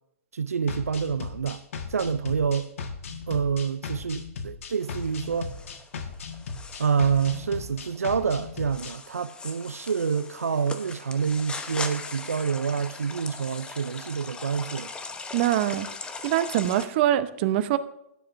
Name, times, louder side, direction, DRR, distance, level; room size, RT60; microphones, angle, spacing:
voice 1, 0.3-1.6 1.9-2.7 3.3-5.5 6.8-14.9, right 6 dB, 85° right, 0.5 m, -27 dB
sound 1, 0.7-9.0, left 5 dB, 65° left, 1.5 m, -37 dB
sound 2, 4.8-16.8, left 4 dB, 10° left, 0.9 m, -40 dB
voice 2, 15.3-15.9 16.2-17.8, right 12 dB, 45° right, 0.8 m, -23 dB
16.5 x 10.0 x 2.6 m
hypercardioid pair, 125°, 8 cm